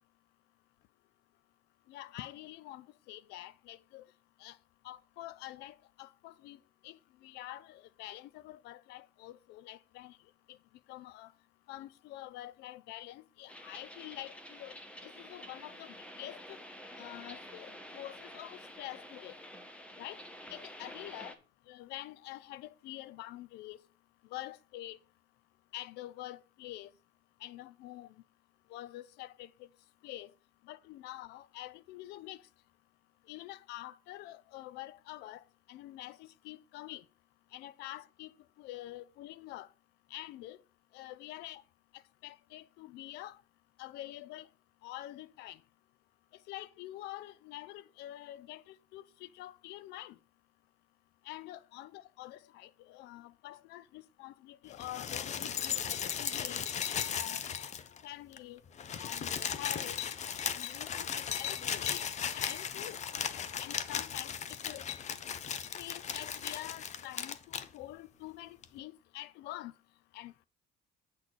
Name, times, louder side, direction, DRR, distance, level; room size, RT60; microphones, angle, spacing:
voice 1, 1.9-4.1 4.4-4.6 4.8-6.6 6.8-10.2 10.5-10.6 10.9-11.3 11.7-14.7 15.0-16.6 17.0-19.4 20.0-20.2 20.5-21.4 21.7-23.8 24.3-25.0 25.7-26.9 27.4-28.1 28.7-29.5 30.0-30.3 30.7-32.4 33.3-35.4 35.7-37.0 37.5-38.3 38.6-39.7 40.1-40.6 40.9-41.6 42.2-43.4 43.8-44.5 44.8-45.6 46.5-50.2 51.3-56.6 57.1-57.5 58.0-58.6 59.0-60.0 60.5-62.0 62.4-63.0 63.6-64.3 64.6-64.9 65.8-69.7 70.1-70.3, left 15 dB, 85° left, 0.5 m, -46 dB
sound 1, 13.5-21.3, equal, 5° left, 1.2 m, -49 dB
sound 2, 54.7-58.0 58.3-58.4 58.7-67.7 68.6-68.7, left 8 dB, 45° left, 0.7 m, -36 dB
8.2 x 4.0 x 6.2 m
cardioid pair, 110°, 17 cm